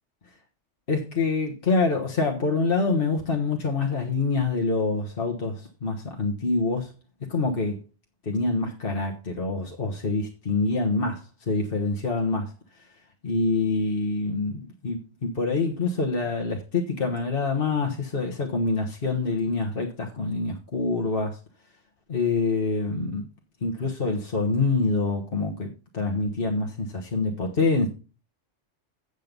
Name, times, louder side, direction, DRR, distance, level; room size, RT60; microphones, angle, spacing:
voice 1, 0.9-6.9 7.3-7.8 8.2-12.5 13.2-21.4 22.1-23.2 23.6-27.9, left 3 dB, 50° left, 1.4 m, -26 dB
8.0 x 7.6 x 5.3 m
omnidirectional pair, 1.2 m